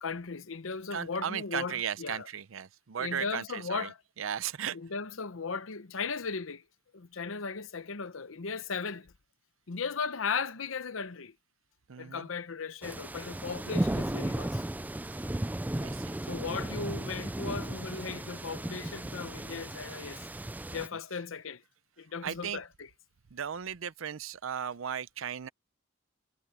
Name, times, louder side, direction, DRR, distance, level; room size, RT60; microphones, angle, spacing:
voice 1, 0.0-2.3 3.0-4.0 4.7-6.6 6.9-9.1 9.7-11.3 12.0-14.6 16.2-20.2 20.7-21.6 22.0-22.9, left 5 dB, 80° left, 0.8 m, -37 dB
voice 2, 0.9-4.8 11.9-12.3 15.7-16.2 20.9-21.2 22.2-22.6 23.3-25.5, right 8 dB, 85° right, 0.6 m, -36 dB
sound 1, 12.8-20.9, right 1 dB, 10° right, 0.4 m, -35 dB
head